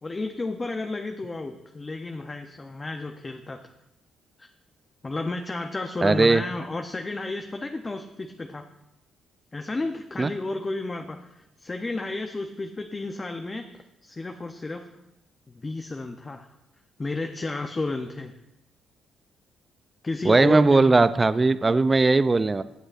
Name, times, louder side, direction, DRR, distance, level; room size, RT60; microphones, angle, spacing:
voice 1, 0.0-3.6 4.4-4.5 5.0-8.6 9.5-13.7 14.0-14.9 15.6-16.5 17.0-18.3 20.0-21.0, left 2 dB, 25° left, 5 dB, 0.6 m, -32 dB
voice 2, 6.0-6.4 10.2-10.3 20.2-22.6, right 3 dB, 25° right, 14 dB, 0.3 m, -19 dB
17.5 x 6.3 x 2.5 m, 0.90 s
cardioid pair, 90°, 0 cm